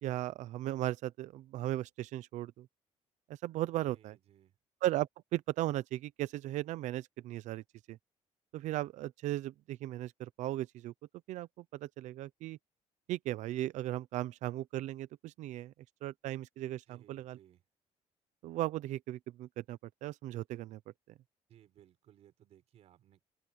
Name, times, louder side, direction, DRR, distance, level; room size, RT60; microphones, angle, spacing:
voice 1, 0.0-2.7 3.4-4.1 4.8-7.6 7.9-8.0 8.5-10.9 11.3-12.6 13.1-15.7 16.0-17.4 18.4-20.8, right 15 dB, 85° right, 0.7 m, -37 dB
voice 2, 3.9-4.6 16.9-17.6 21.5-23.2, right 11 dB, 60° right, 5.2 m, -62 dB
open air
cardioid pair, 155°, 12 cm